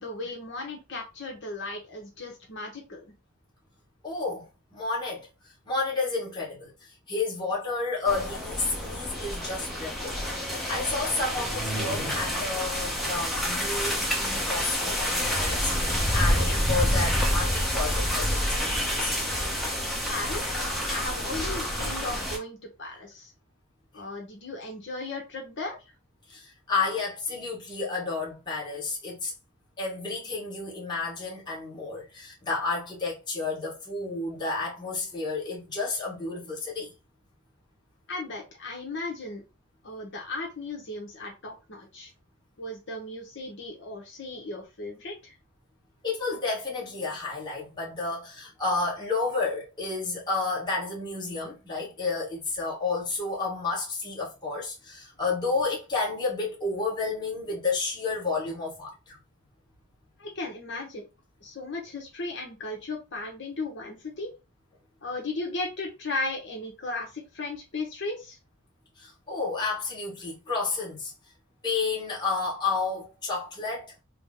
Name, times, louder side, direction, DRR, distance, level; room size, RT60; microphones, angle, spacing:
voice 1, 0.0-3.1 20.1-23.3 23.9-25.9 38.1-39.4 39.8-42.1 42.6-45.3 60.2-61.1 61.4-64.3 65.0-68.4, left 2 dB, 55° left, 0.9 m, -36 dB
voice 2, 4.0-19.2 23.9-24.0 26.3-29.3 29.8-36.9 46.0-59.2 69.0-71.1 71.6-74.0, left 3 dB, 20° left, 1.2 m, -31 dB
sound 1, 8.1-22.4, equal, ahead, 0.7 m, -28 dB
3.7 x 2.1 x 3.6 m
head